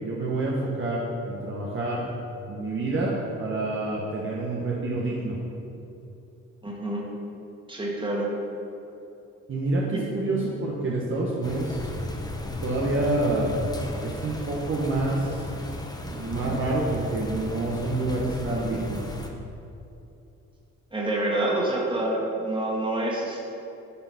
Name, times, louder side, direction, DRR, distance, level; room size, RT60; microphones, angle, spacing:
voice 1, 0.0-2.0 2.5-5.4 9.5-11.8 12.1-12.2 12.6-13.5 14.0-15.4 16.0-19.0, right 2 dB, 40° right, -4 dB, 1.2 m, -27 dB
voice 2, 6.6-7.0 7.7-8.3 9.9-10.0 20.9-23.4, right 1 dB, 15° right, -3 dB, 1.9 m, -27 dB
sound 1, 11.4-19.3, left 1 dB, 15° left, 0.8 m, -35 dB
9.8 x 3.8 x 5.7 m, 2.8 s
cardioid pair, 90°, 30 cm